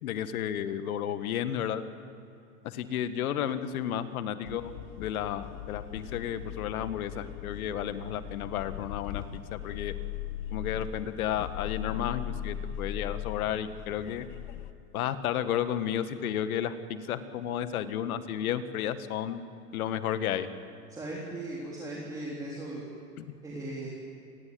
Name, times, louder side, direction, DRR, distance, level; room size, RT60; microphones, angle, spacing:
voice 1, 0.0-1.8 2.6-4.7 5.0-9.2 9.5-9.9 10.5-14.3 14.9-19.4 19.7-20.5 23.2-23.3, left 10 dB, 60° left, 11 dB, 1.8 m, -32 dB
sound 1, 4.5-14.7, left 11 dB, 25° left, 0.6 m, -39 dB
voice 2, 20.9-22.8 23.4-23.9, right 2 dB, 5° right, -4 dB, 3.5 m, -38 dB
28.5 x 21.0 x 7.9 m, 2.7 s
hypercardioid pair, 150°, 48 cm